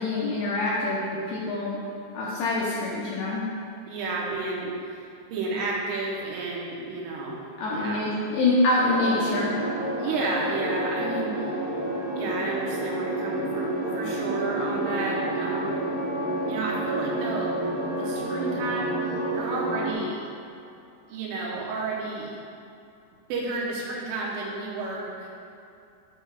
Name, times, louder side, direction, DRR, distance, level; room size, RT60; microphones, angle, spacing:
voice 1, 0.0-1.8 2.1-3.4 7.6-9.5, left 2 dB, 80° left, -6 dB, 2.5 m, -25 dB
voice 2, 3.9-7.4 7.7-8.1 10.0-11.5 12.1-15.8 16.5-17.6 17.9-20.3 21.1-22.4 23.3-25.3, right 3 dB, 90° right, -3 dB, 3.5 m, -31 dB
sound 1, 8.8-19.9, right 1 dB, 70° right, 2.8 m, -29 dB
12.0 x 4.8 x 2.4 m, 2.6 s
omnidirectional pair, 5.5 m